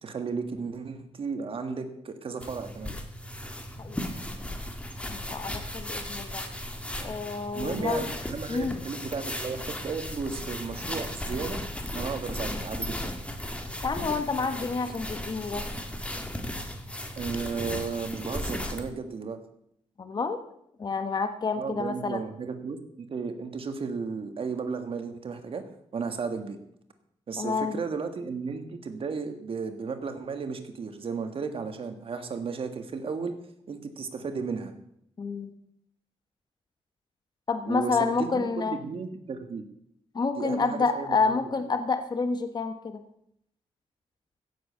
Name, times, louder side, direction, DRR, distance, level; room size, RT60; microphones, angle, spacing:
voice 1, 0.0-2.9 7.5-11.6 11.9-13.1 17.2-19.4 21.6-25.6 25.9-26.6 27.3-33.3 33.7-34.7 37.7-39.6 40.3-41.3, right 5 dB, 55° right, 7 dB, 1.7 m, -34 dB
sound 1, 2.4-18.9, left 1 dB, 10° left, 1.9 m, -36 dB
voice 2, 3.8-4.1 5.1-6.4 7.0-8.1 8.5-8.8 13.8-15.6 20.0-20.4 20.8-22.2 27.4-27.8 35.2-35.5 37.5-38.8 40.1-43.0, left 4 dB, 40° left, 8 dB, 1.4 m, -29 dB
16.0 x 7.5 x 6.9 m, 0.74 s
cardioid pair, 105°, 11 cm